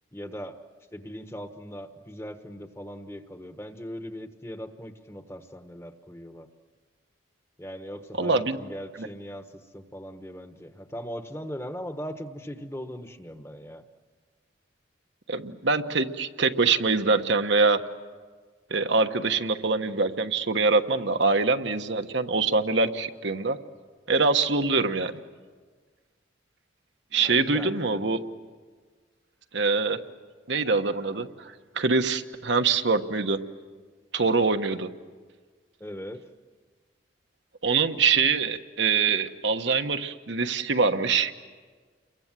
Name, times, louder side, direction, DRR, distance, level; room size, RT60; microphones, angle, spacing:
voice 1, 0.1-0.6 0.9-6.5 7.6-9.5 9.7-13.8 24.6-24.8 27.2-28.1 35.8-36.2, equal, 15° left, 8 dB, 1.3 m, -39 dB
voice 2, 8.2-8.6 9.0-9.1 15.3-17.8 18.7-23.6 24.1-25.1 27.1-28.2 29.5-30.0 30.5-33.4 34.1-34.9 37.6-41.3, right 4 dB, 65° right, 7 dB, 1.3 m, -24 dB
29.5 x 23.0 x 7.6 m, 1.5 s
head